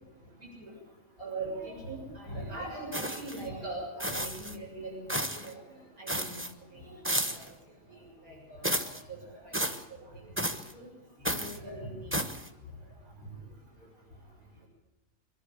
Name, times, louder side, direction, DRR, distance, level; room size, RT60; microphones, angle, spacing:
voice 1, 0.4-0.7 1.2-5.6 6.0-7.5 7.9-9.5 9.9-10.3 10.7-10.9 11.3-12.2, right 2 dB, 85° right, -3 dB, 7.6 m, -41 dB
sound 1, 2.9-3.4 4.0-4.6 5.1-5.5 6.1-6.5 7.0-7.5 8.6-9.0 9.5-9.8 10.4-10.7 11.2-11.6 12.1-12.5, right 1 dB, 10° right, 1.1 m, -32 dB
24.5 x 12.0 x 9.9 m, 0.99 s
omnidirectional pair, 1.5 m